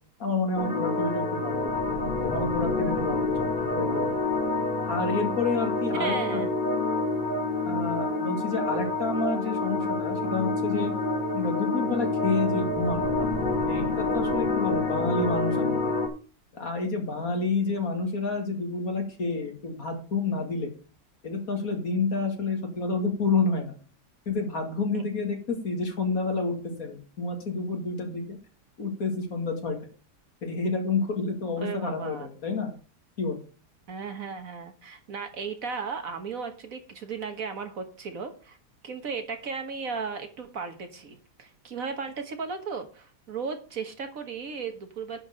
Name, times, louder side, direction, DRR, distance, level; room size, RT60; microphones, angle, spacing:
voice 1, 0.2-1.7 2.2-4.2 4.9-6.4 7.6-10.9 11.3-13.3 13.6-15.9 16.5-20.7 21.2-23.7 24.3-28.4 28.8-29.8 30.4-32.7 33.2-33.4, left 3 dB, 55° left, 3 dB, 2.6 m, -29 dB
sound 1, 0.6-16.1, left 2 dB, 30° left, 1.5 m, -28 dB
voice 2, 5.9-6.5 24.9-25.0 31.6-32.3 33.9-38.6 38.8-45.2, right 5 dB, 55° right, 6 dB, 1.6 m, -35 dB
10.5 x 4.6 x 6.7 m, 0.39 s
omnidirectional pair, 1.8 m